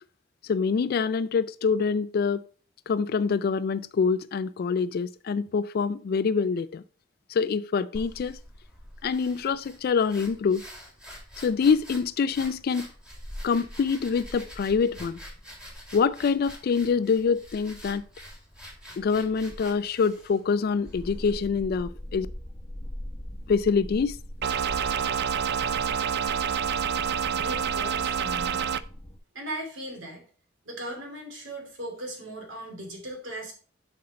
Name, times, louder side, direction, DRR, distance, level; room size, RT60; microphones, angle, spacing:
voice 1, 0.5-2.4 2.9-6.8 7.3-8.4 9.0-10.6 11.4-12.9 13.4-15.2 15.9-18.0 19.0-22.3 23.5-24.2, left 5 dB, 50° left, 0.3 m, -25 dB
sound 1, 7.9-21.4, equal, 5° right, 2.3 m, -45 dB
sound 2, 20.8-29.2, left 1 dB, 20° left, 0.9 m, -41 dB
sound 3, 24.4-28.8, right 7 dB, 60° right, 0.4 m, -27 dB
voice 2, 27.3-28.8 29.3-30.2 30.6-33.5, right 1 dB, 75° right, 2.8 m, -38 dB
7.7 x 5.4 x 4.3 m
head